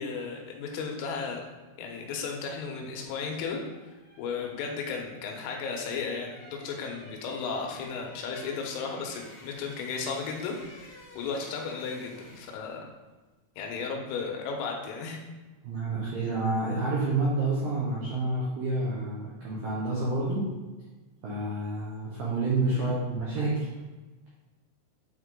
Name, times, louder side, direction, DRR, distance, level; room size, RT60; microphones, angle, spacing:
voice 1, 0.0-1.5 1.8-3.6 4.2-12.8 13.6-15.2 22.7-22.9, left 5 dB, 85° left, 1 dB, 3.5 m, -34 dB
sound 1, 2.7-12.7 13.0-13.2, left 1 dB, 55° left, 1.7 m, -52 dB
voice 2, 15.6-20.5 21.2-23.7, right 2 dB, 80° right, -7 dB, 2.1 m, -29 dB
8.7 x 3.7 x 3.7 m, 1.2 s
omnidirectional pair, 5.7 m